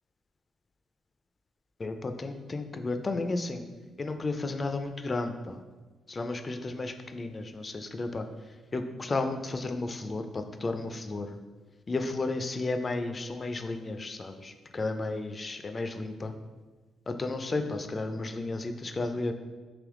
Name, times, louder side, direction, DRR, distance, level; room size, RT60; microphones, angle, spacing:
voice 1, 1.8-3.6 4.0-5.6 6.1-8.3 8.7-11.4 11.9-16.3 17.1-19.3, left 3 dB, 35° left, 7 dB, 0.3 m, -33 dB
3.4 x 2.9 x 3.6 m, 1.3 s
cardioid pair, 85°, 0 cm